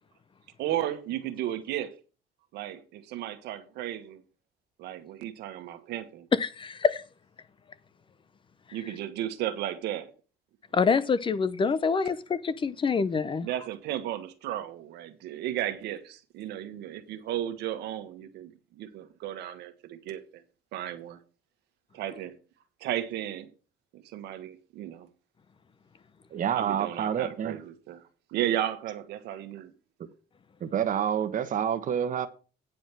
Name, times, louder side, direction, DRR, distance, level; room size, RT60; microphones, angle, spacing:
voice 1, 0.6-1.9 2.5-4.2 4.8-6.3 8.7-10.1 13.4-20.4 20.7-21.2 21.9-22.4 22.8-23.5 23.9-25.1 26.5-28.0 28.3-29.7, right 12 dB, 85° right, 1.5 m, -34 dB
voice 2, 6.3-7.0 10.7-13.5, left 5 dB, 30° left, 0.7 m, -26 dB
voice 3, 26.3-27.6 30.6-32.3, right 9 dB, 50° right, 1.3 m, -28 dB
9.5 x 5.1 x 6.1 m
cardioid pair, 110°, 17 cm